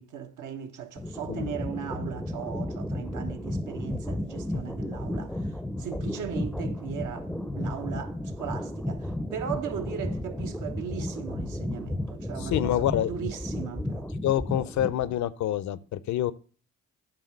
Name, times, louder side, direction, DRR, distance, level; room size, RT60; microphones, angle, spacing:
voice 1, 0.0-7.3 7.5-14.1, right 8 dB, 80° right, 1.2 m, -38 dB
sound 1, 1.0-15.2, left 1 dB, ahead, 0.5 m, -33 dB
voice 2, 12.4-13.1 14.2-16.3, left 12 dB, 70° left, 0.6 m, -27 dB
9.0 x 3.8 x 6.4 m
cardioid pair, 90°, 30 cm